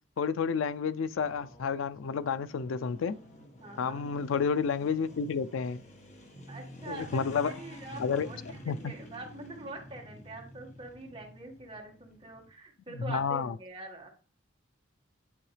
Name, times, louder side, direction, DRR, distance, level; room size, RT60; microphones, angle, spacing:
voice 1, 0.2-3.2 3.8-5.8 6.9-7.5 8.0-8.3 8.7-8.9 12.9-13.5, left 6 dB, 90° left, 0.4 m, -30 dB
sound 1, 1.2-12.5, left 1 dB, 40° left, 1.2 m, -49 dB
voice 2, 3.6-4.0 6.5-14.1, right 2 dB, 25° right, 1.9 m, -44 dB
10.5 x 4.6 x 3.3 m
head